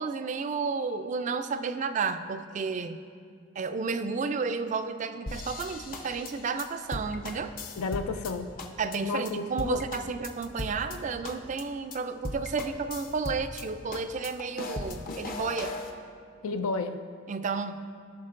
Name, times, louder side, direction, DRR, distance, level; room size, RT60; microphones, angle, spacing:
voice 1, 0.0-3.0 3.6-7.5 8.8-15.8 17.3-17.8, right 4 dB, 35° right, 10 dB, 0.3 m, -32 dB
sound 1, 5.3-8.3 8.6-9.0 9.2-9.3 9.6-11.0 11.2-11.6 11.9-12.0 12.2-13.6 13.9-15.9, left 2 dB, 40° left, 0.7 m, -37 dB
voice 2, 7.8-8.5 9.0-9.8 16.4-17.0, left 4 dB, 90° left, 8 dB, 0.4 m, -31 dB
16.5 x 5.6 x 2.5 m, 2.2 s
head